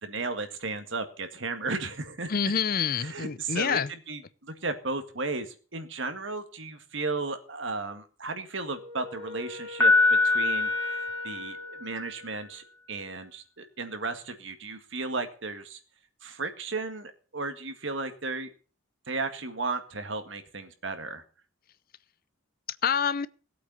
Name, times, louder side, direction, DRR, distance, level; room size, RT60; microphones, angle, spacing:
voice 1, 0.0-2.3 3.0-3.8 4.1-15.8 16.2-18.5 19.1-21.2, right 3 dB, 65° right, 1.9 m, -34 dB
voice 2, 2.3-3.9 22.8-23.3, left 6 dB, 45° left, 0.6 m, -27 dB
Wind instrument woodwind instrument, 8.6-12.5, left 2 dB, 25° right, 2.1 m, -42 dB
Piano, 9.8-11.9, left 3 dB, 15° left, 2.5 m, -24 dB
18.5 x 8.4 x 5.5 m
head